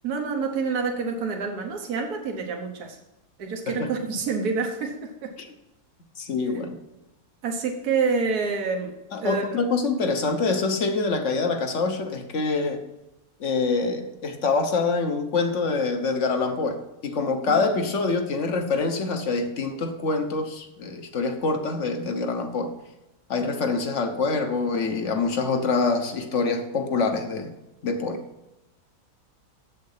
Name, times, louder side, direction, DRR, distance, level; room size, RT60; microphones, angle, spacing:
voice 1, 0.0-3.0 3.4-5.3 7.4-8.9 9.2-9.6 17.5-17.7, right 5 dB, 80° right, 3 dB, 1.6 m, -27 dB
voice 2, 6.2-6.8 9.1-12.8 13.4-22.7 23.3-27.5 27.8-28.2, left 4 dB, 55° left, 6 dB, 1.3 m, -25 dB
7.7 x 7.4 x 5.7 m, 0.96 s
omnidirectional pair, 1.6 m